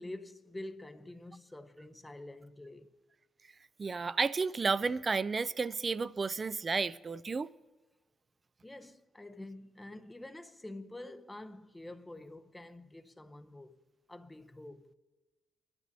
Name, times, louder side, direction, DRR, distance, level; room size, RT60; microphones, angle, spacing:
voice 1, 0.0-3.0 8.6-13.8 14.1-14.9, left 1 dB, 15° left, 0.7 m, -47 dB
voice 2, 3.8-7.5, right 4 dB, 35° right, 0.4 m, -32 dB
23.0 x 12.5 x 2.7 m
cardioid pair, 90°, 0 cm